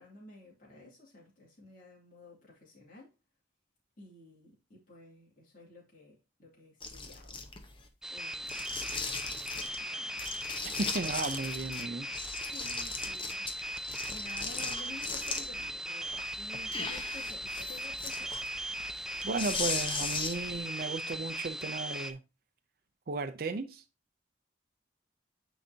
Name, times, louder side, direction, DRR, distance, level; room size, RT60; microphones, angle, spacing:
voice 1, 0.0-3.1 4.0-7.4 8.1-8.7 9.5-10.4 12.4-13.4 14.1-18.4, left 2 dB, 50° left, 2.4 m, -52 dB
sound 1, 6.8-7.8 8.4-9.8 10.2-11.8 12.1-15.7 16.1-20.6, left 4 dB, 30° left, 0.9 m, -38 dB
sound 2, 8.0-22.1, right 1 dB, 5° right, 0.4 m, -38 dB
voice 2, 10.8-12.1 19.2-22.2 23.1-23.8, right 3 dB, 55° right, 0.6 m, -35 dB
9.4 x 4.1 x 2.8 m
head